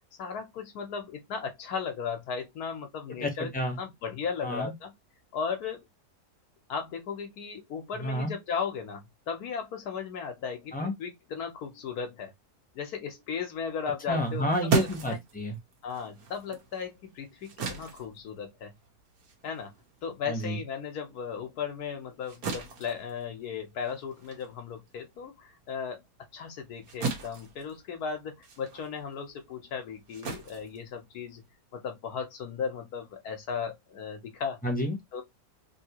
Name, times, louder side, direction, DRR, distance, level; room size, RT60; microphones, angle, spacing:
voice 1, 0.2-3.5 3.8-4.9 5.3-5.8 6.7-12.3 12.7-14.5 14.8-15.2 15.8-18.7 19.4-19.7 20.0-26.0 26.3-31.4 31.7-34.6 35.1-35.2, left 6 dB, 75° left, 1.3 m, -36 dB
voice 2, 3.2-3.8 4.4-4.7 8.0-8.3 10.7-10.9 14.1-15.6 20.3-20.6 34.6-35.0, equal, 5° left, 0.7 m, -30 dB
sound 1, 14.2-21.0 21.3-31.5, right 5 dB, 70° right, 1.4 m, -37 dB
3.4 x 2.8 x 2.9 m
omnidirectional pair, 1.7 m